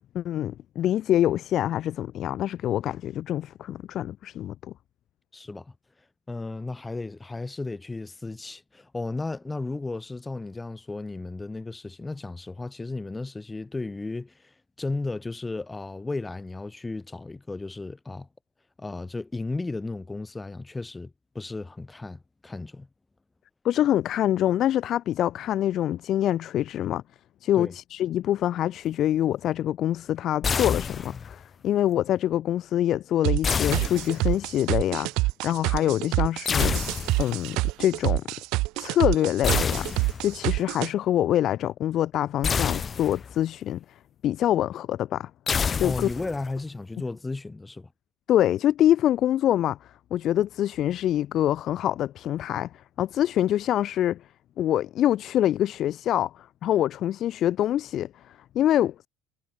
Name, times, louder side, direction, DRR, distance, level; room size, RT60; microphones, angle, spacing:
voice 1, 0.1-4.5 23.6-27.0 27.4-36.9 37.2-38.2 38.8-43.8 44.2-45.3 45.8-46.1 48.3-49.8 50.1-52.7 53.0-54.2 54.6-59.1, left 12 dB, 55° left, 3.4 m, -25 dB
voice 2, 5.3-5.7 6.3-14.3 14.8-18.3 18.8-22.9 27.6-27.7 45.8-47.9, left 3 dB, 15° left, 5.4 m, -34 dB
sound 1, 30.4-31.4 33.4-34.5 36.4-37.4 39.4-40.4 42.4-43.4 45.5-46.5, left 6 dB, 30° left, 0.9 m, -28 dB
sound 2, 33.2-40.9, right 22 dB, 75° right, 0.6 m, -26 dB
supercardioid pair, 105°, 0 cm